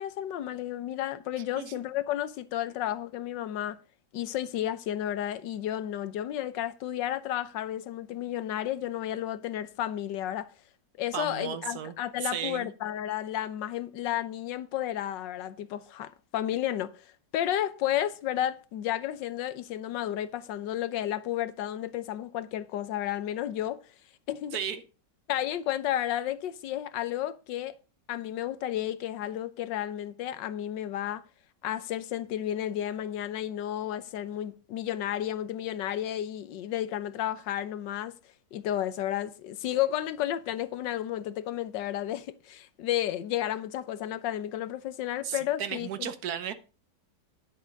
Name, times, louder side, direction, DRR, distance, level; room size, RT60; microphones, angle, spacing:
voice 1, 0.0-3.8 4.1-10.5 11.0-17.0 17.3-23.8 24.3-24.6 25.3-27.7 28.1-31.2 31.6-38.2 38.5-46.1, left 12 dB, 85° left, 1.4 m, -32 dB
voice 2, 11.1-11.9 12.2-12.7 24.5-24.8 45.2-46.5, right 8 dB, 65° right, 1.3 m, -34 dB
10.5 x 6.3 x 5.1 m
omnidirectional pair, 1.9 m